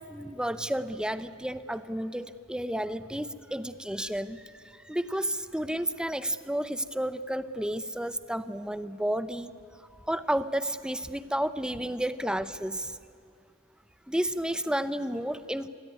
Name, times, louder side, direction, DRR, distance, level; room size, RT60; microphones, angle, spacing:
voice 1, 0.0-4.5 4.8-9.5 10.1-13.0 14.1-15.7, right 1 dB, 5° right, 13 dB, 0.8 m, -31 dB
27.5 x 21.5 x 9.6 m, 2.4 s
head